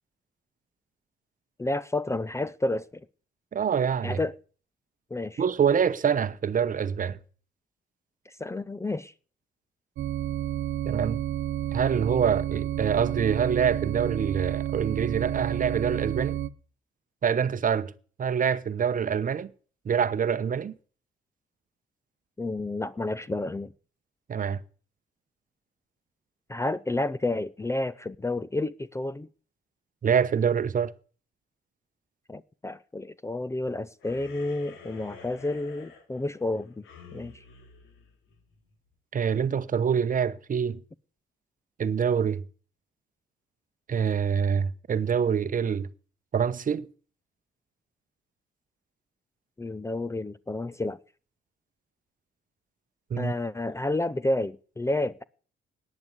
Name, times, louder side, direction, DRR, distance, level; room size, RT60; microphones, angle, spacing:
voice 1, 1.6-2.9 4.0-4.3 5.1-5.4 8.4-9.1 22.4-23.7 26.5-29.3 32.3-36.8 37.1-37.3 49.6-51.0 53.2-55.2, left 2 dB, 15° left, 0.5 m, -30 dB
voice 2, 3.5-4.2 5.4-7.2 10.9-11.2 11.7-16.4 17.2-17.9 18.2-19.5 19.8-20.7 24.3-24.6 30.0-30.9 39.1-40.8 41.8-42.4 43.9-45.9 46.3-46.9 53.1-53.3, right 7 dB, 45° right, 0.9 m, -25 dB
sound 1, 10.0-16.5, right 12 dB, 70° right, 0.8 m, -30 dB
sound 2, 34.0-38.7, left 5 dB, 90° left, 2.8 m, -50 dB
10.5 x 9.2 x 7.9 m
cardioid pair, 90°, 20 cm